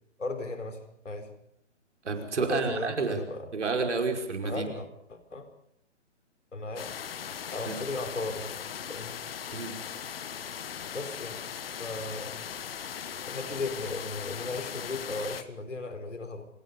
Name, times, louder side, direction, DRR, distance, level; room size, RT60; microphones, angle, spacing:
voice 1, 0.2-1.3 2.4-3.5 4.4-5.5 6.5-7.1 7.5-8.6 8.9-9.1 10.9-11.4 11.8-12.5 13.3-16.5, left 2 dB, 80° left, 8 dB, 4.6 m, -36 dB
voice 2, 2.0-3.2 3.5-4.6 7.7-7.8 9.5-9.7, right 4 dB, 70° right, 5 dB, 5.4 m, -30 dB
sound 1, 6.8-15.4, left 8 dB, 50° left, 1.5 m, -39 dB
27.5 x 22.0 x 5.5 m, 0.73 s
figure-of-eight pair, 140°, 36 cm